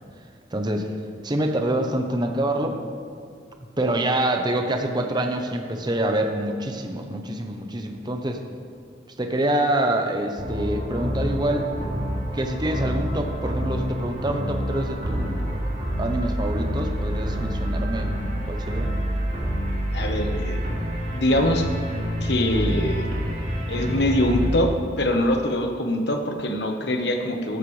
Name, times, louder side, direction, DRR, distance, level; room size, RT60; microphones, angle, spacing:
voice 1, 0.5-0.9 1.2-2.8 3.8-8.4 9.2-11.7 12.3-15.6 16.0-18.1 18.5-18.9, right 1 dB, 25° right, 4 dB, 0.8 m, -26 dB
sound 1, 10.4-24.5, equal, 45° right, 2.9 m, -27 dB
voice 2, 19.9-20.6 21.1-21.7 22.2-23.1 23.7-27.6, left 1 dB, 65° left, 4 dB, 1.2 m, -23 dB
13.5 x 13.0 x 3.3 m, 2.2 s
head